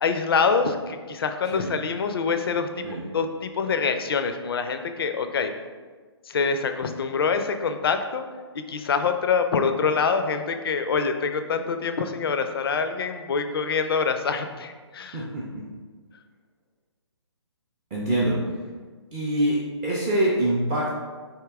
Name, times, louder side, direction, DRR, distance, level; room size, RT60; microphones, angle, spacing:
voice 1, 0.0-2.8 3.1-5.5 6.3-8.2 8.7-15.3, left 5 dB, 55° left, 7 dB, 0.4 m, -25 dB
voice 2, 15.1-15.6 17.9-18.4 19.1-19.6 19.8-20.9, right 1 dB, 15° right, -6 dB, 0.4 m, -24 dB
3.5 x 2.7 x 3.4 m, 1.4 s
figure-of-eight pair, 140°, 15 cm